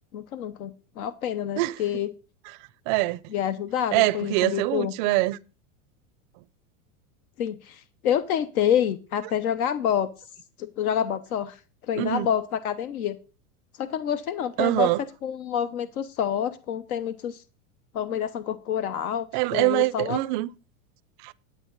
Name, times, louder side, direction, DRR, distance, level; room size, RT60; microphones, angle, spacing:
voice 1, 0.1-2.1 3.3-4.9 7.4-10.1 10.6-11.6 11.9-13.2 13.8-17.4 17.9-19.3 19.5-20.2, left 9 dB, 80° left, 1.0 m, -27 dB
voice 2, 2.9-3.2 3.9-5.4 12.0-12.3 14.6-15.0 19.3-20.5 21.2-21.3, right 19 dB, 35° right, 0.4 m, -24 dB
10.5 x 8.4 x 3.9 m
supercardioid pair, 150°, 42 cm